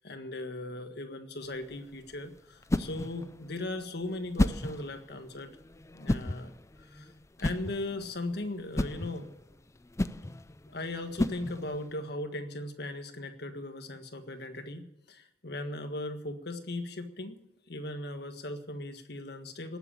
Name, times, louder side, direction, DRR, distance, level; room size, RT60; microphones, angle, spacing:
voice 1, 0.0-5.5 5.9-6.5 6.8-7.1 7.4-9.3 10.7-19.8, left 2 dB, 65° left, 7 dB, 1.6 m, -38 dB
sound 1, 1.4-11.9, left 1 dB, 15° left, 0.5 m, -34 dB
19.0 x 8.1 x 8.7 m, 0.88 s
head